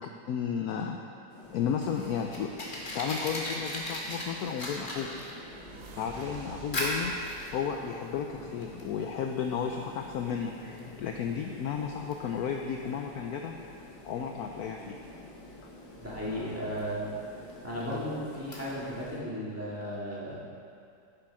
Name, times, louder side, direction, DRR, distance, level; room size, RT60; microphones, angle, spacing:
voice 1, 0.0-1.0 1.5-2.7 2.9-5.1 5.9-7.1 7.5-13.5 14.0-15.0, left 7 dB, 70° left, 3 dB, 0.9 m, -33 dB
sound 1, 1.3-19.2, left 2 dB, 90° left, 2.1 m, -49 dB
Fire, 1.4-19.1, left 1 dB, 30° left, 1.4 m, -40 dB
sound 2, 4.2-9.0, right 6 dB, 65° right, 0.7 m, -51 dB
voice 2, 16.0-17.1 17.6-20.4, equal, 10° right, -8 dB, 2.0 m, -35 dB
11.0 x 6.9 x 4.8 m, 2.4 s
omnidirectional pair, 2.0 m